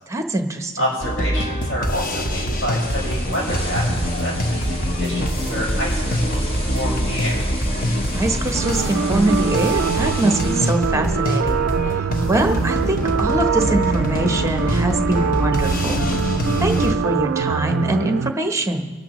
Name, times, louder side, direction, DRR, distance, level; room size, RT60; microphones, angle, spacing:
voice 1, 0.1-0.7 8.1-12.0 12.3-16.1 16.6-18.9, right 1 dB, 15° right, 5 dB, 0.9 m, -23 dB
voice 2, 0.8-7.4, equal, 60° left, -5 dB, 5.0 m, -28 dB
sound 1, 1.0-16.9, equal, 40° left, 1.0 m, -24 dB
sound 2, 2.8-10.7, equal, 25° left, 1.6 m, -34 dB
sound 3, 8.5-18.3, right 7 dB, 55° right, 0.3 m, -24 dB
24.0 x 12.5 x 3.0 m, 1.4 s
head